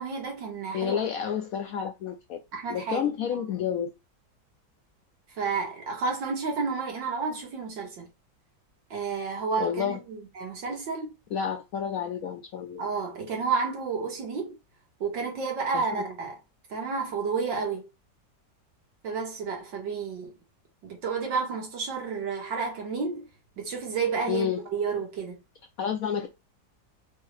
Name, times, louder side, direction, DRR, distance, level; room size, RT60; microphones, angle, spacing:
voice 1, 0.0-1.0 2.5-3.0 5.4-8.1 8.9-11.1 12.8-14.6 15.0-16.4 16.7-17.8 19.0-20.3 20.8-23.3 23.6-25.4, right 5 dB, 90° right, 2.3 m, -31 dB
voice 2, 0.7-2.4 2.7-3.9 9.6-10.0 11.3-12.9 15.7-16.0 24.3-24.6 25.8-26.3, left 8 dB, 75° left, 0.8 m, -30 dB
5.5 x 2.6 x 3.2 m
omnidirectional pair, 1.9 m